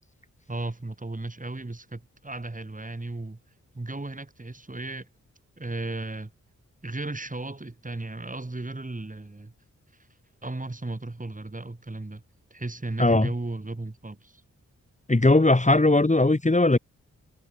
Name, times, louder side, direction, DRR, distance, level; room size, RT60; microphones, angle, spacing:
voice 1, 0.5-3.4 3.7-5.1 5.6-6.3 6.8-9.5 10.4-12.2 12.5-14.4, right 2 dB, 25° right, 6.1 m, -35 dB
voice 2, 15.1-16.8, left 2 dB, 20° left, 3.1 m, -19 dB
cardioid pair, 50°, 32 cm